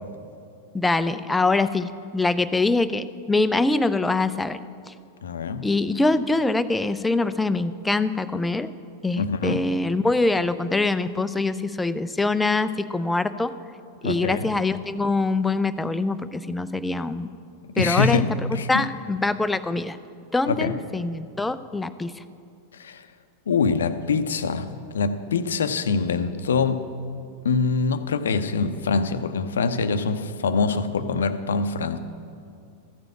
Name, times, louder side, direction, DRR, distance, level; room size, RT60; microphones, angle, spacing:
voice 1, 0.7-4.6 5.6-8.7 9.0-13.5 14.0-17.3 17.8-18.2 18.7-20.0 20.3-22.1, left 3 dB, 10° left, 12 dB, 0.4 m, -24 dB
voice 2, 5.2-5.7 9.2-9.7 14.0-14.5 17.7-18.9 20.5-20.8 22.8-23.0 23.5-26.9 27.4-32.0, left 4 dB, 65° left, 11 dB, 0.6 m, -24 dB
14.0 x 6.9 x 7.5 m, 2.4 s
figure-of-eight pair, 90°, 0 cm